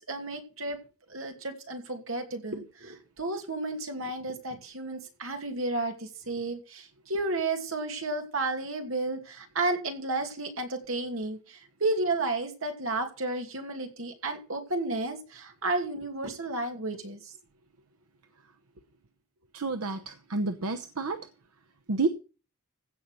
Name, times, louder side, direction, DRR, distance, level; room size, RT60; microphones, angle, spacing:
voice 1, 0.1-0.8 1.1-17.3, right 2 dB, 65° right, 2.6 m, -32 dB
voice 2, 19.5-21.2 21.9-22.1, right 3 dB, 85° right, 0.9 m, -29 dB
16.0 x 5.6 x 6.3 m
head